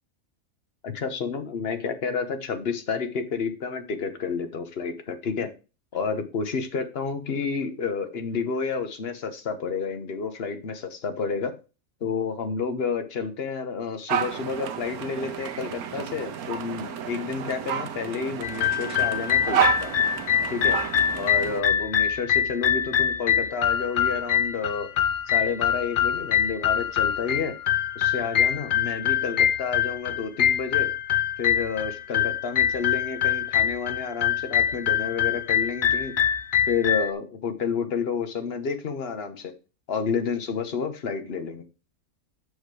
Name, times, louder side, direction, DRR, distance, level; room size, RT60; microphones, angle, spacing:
voice 1, 0.8-5.5 5.9-11.5 12.0-19.9 20.5-20.8 21.2-24.9 25.3-27.5 27.9-30.9 31.4-36.1 36.7-39.5 39.9-41.6, left 5 dB, 45° left, 7 dB, 1.1 m, -30 dB
sound 1, 14.1-21.6, right 9 dB, 80° right, 1.3 m, -30 dB
sound 2, 18.4-37.1, left 9 dB, 85° left, 0.4 m, -24 dB
6.3 x 5.0 x 4.8 m, 0.31 s
omnidirectional pair, 1.5 m